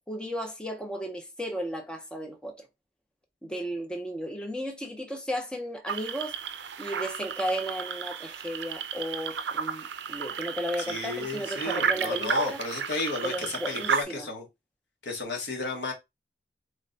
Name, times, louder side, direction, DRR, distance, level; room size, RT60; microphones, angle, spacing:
voice 1, 0.1-2.6 3.4-6.3 6.8-12.6 13.2-14.3, equal, 5° left, 0.6 m, -34 dB
sound 1, 5.9-14.0, right 7 dB, 75° right, 0.4 m, -32 dB
voice 2, 10.9-14.5 15.0-15.9, left 3 dB, 75° left, 1.1 m, -33 dB
3.3 x 2.2 x 3.7 m
head